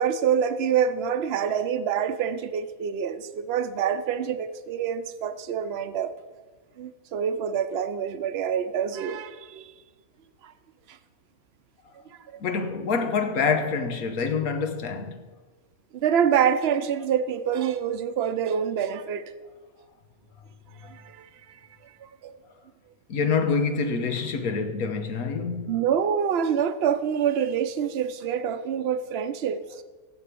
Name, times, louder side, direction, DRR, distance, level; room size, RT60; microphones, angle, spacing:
voice 1, 0.0-6.1 6.8-9.7 10.4-10.5 10.9-11.0 15.9-19.2 20.8-21.3 22.0-22.3 25.7-29.6, right 8 dB, 50° right, 0.9 m, -26 dB
voice 2, 12.4-15.2 20.8-20.9 23.1-25.7, left 5 dB, 75° left, 1.6 m, -26 dB
13.0 x 7.5 x 8.4 m
omnidirectional pair, 1.5 m